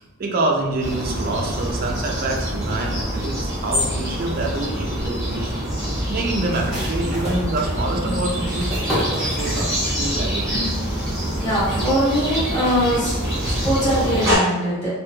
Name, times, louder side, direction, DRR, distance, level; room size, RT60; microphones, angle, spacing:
voice 1, 0.0-5.5 6.1-10.5, right 2 dB, 45° right, 1 dB, 0.4 m, -26 dB
sound 1, 0.8-14.3, equal, 15° right, 0.9 m, -25 dB
sound 2, 6.5-10.2 10.4-10.5 11.0-11.4, equal, ahead, 1.3 m, -31 dB
sound 3, 8.0-8.4 10.5-10.9, left 2 dB, 60° left, 0.8 m, -31 dB
voice 2, 11.4-13.1 13.4-14.9, equal, 35° left, -11 dB, 1.5 m, -21 dB
3.1 x 2.4 x 2.2 m, 1.1 s
head